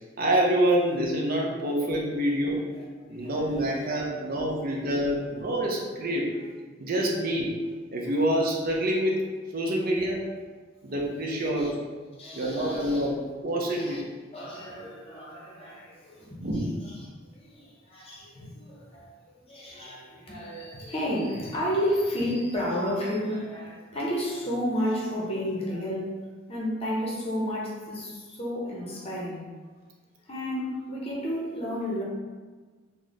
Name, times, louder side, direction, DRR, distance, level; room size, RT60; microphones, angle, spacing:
voice 1, 0.2-2.6 3.1-6.3 6.8-7.6 7.9-9.3 9.5-10.2 10.8-11.8 12.3-14.0 16.4-16.7 30.6-30.7, right 1 dB, 50° right, -2 dB, 0.5 m, -26 dB
voice 2, 3.2-3.9 4.4-4.5 4.7-5.2 11.3-11.7 12.2-13.0 13.6-14.0 14.3-17.0 17.3-26.2 26.5-29.5 30.3-32.0, equal, 30° left, -4 dB, 0.7 m, -32 dB
3.1 x 2.1 x 3.9 m, 1.4 s
head